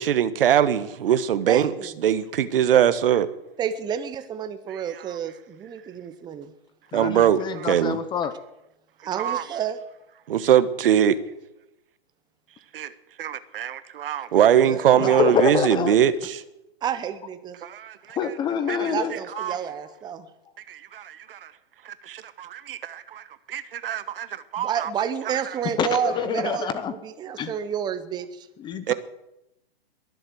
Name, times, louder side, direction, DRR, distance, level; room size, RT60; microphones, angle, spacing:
voice 1, 0.0-1.7 2.0-3.3 4.7-4.8 6.9-8.0 9.2-9.4 10.3-11.2 12.7-12.9 13.2-16.4 17.6-18.2 18.7-18.8 19.1-19.6 20.7-21.5 21.8-23.2 23.5-24.9 28.9-29.0, right 10 dB, 60° right, 14 dB, 1.3 m, -22 dB
voice 2, 1.5-1.9 3.6-6.5 9.0-9.8 14.6-15.3 16.8-17.6 18.8-20.3 24.6-28.5, right 8 dB, 15° right, 11 dB, 0.9 m, -30 dB
voice 3, 6.9-8.3 15.0-16.0 18.1-19.1 25.8-26.9 27.4-27.5 28.6-28.9, left 7 dB, 15° left, 14 dB, 0.7 m, -26 dB
22.0 x 7.9 x 7.8 m, 0.88 s
hypercardioid pair, 135°, 31 cm